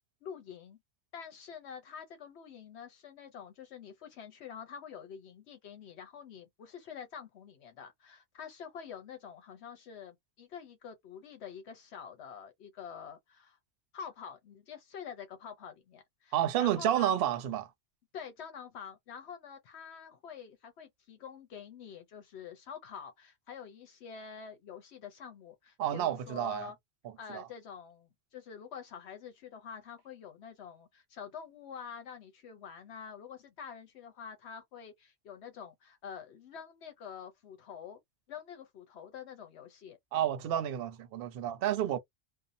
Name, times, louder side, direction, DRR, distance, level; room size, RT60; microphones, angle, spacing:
voice 1, 0.2-0.8 1.1-13.6 13.9-17.1 18.1-26.8 27.2-38.0 38.3-40.0, left 7 dB, 80° left, 0.9 m, -47 dB
voice 2, 16.3-17.7 25.8-26.7 27.3-27.5 40.1-42.0, right 11 dB, 65° right, 0.7 m, -30 dB
2.7 x 2.0 x 2.5 m
omnidirectional pair, 1.1 m